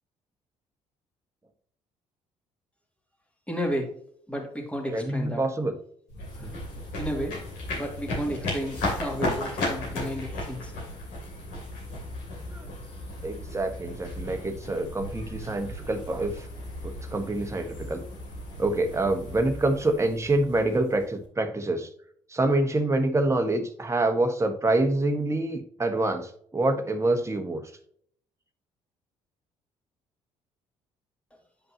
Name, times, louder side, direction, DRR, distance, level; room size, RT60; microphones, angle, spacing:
voice 1, 3.5-3.9 4.3-5.4 6.3-6.5 7.0-7.4 7.8-10.7, equal, 10° left, 1 dB, 2.2 m, -32 dB
voice 2, 4.9-5.8 6.4-6.5 12.5-12.7 13.2-16.5 16.8-18.0 18.6-21.9 22.3-27.6, right 2 dB, 20° right, 5 dB, 1.3 m, -26 dB
sound 1, 6.1-21.2, left 1 dB, 80° left, 2.7 m, -35 dB
8.9 x 5.2 x 2.8 m, 0.63 s
hypercardioid pair, 55°, 14 cm